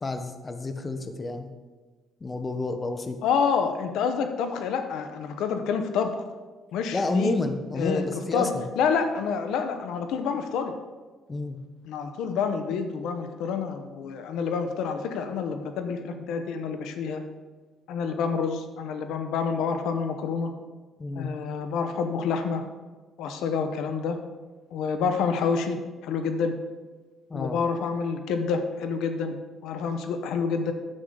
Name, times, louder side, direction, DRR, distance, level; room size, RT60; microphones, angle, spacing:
voice 1, 0.0-1.5 2.2-3.2 6.9-8.7 11.3-11.6 21.0-21.3 27.3-27.6, left 2 dB, 25° left, 7 dB, 0.8 m, -29 dB
voice 2, 3.2-6.2 6.7-7.3 7.8-8.0 8.3-10.7 11.9-17.2 17.9-20.5 21.2-22.6 23.2-24.2 24.7-26.6 27.3-29.4 29.6-30.7, left 5 dB, 85° left, 7 dB, 0.9 m, -28 dB
10.0 x 7.8 x 3.9 m, 1.3 s
cardioid pair, 135°, 0 cm